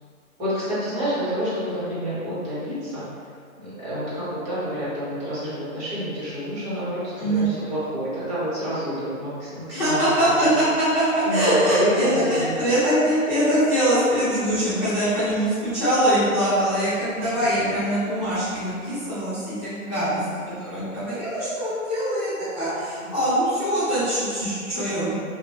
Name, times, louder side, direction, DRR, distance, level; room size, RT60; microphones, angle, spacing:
voice 1, 0.4-3.3 3.6-10.7 11.2-12.5 17.2-17.4 20.0-20.7 23.0-23.2, equal, 20° right, -11 dB, 0.9 m, -29 dB
voice 2, 9.7-20.1 20.6-25.1, equal, 5° left, -16 dB, 0.4 m, -23 dB
2.8 x 2.1 x 2.8 m, 2.2 s
hypercardioid pair, 140°, 42 cm